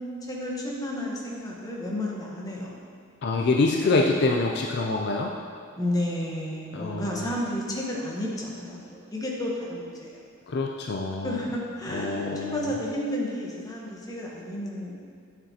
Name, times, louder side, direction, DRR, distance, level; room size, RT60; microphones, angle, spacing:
voice 1, 0.3-2.7 3.8-4.4 5.8-10.2 11.2-15.0, left 1 dB, 20° left, -3 dB, 1.0 m, -32 dB
voice 2, 3.2-5.3 6.7-7.3 10.5-11.4 11.9-12.7, left 3 dB, 55° left, 1 dB, 0.4 m, -26 dB
8.9 x 7.0 x 2.9 m, 2.3 s
head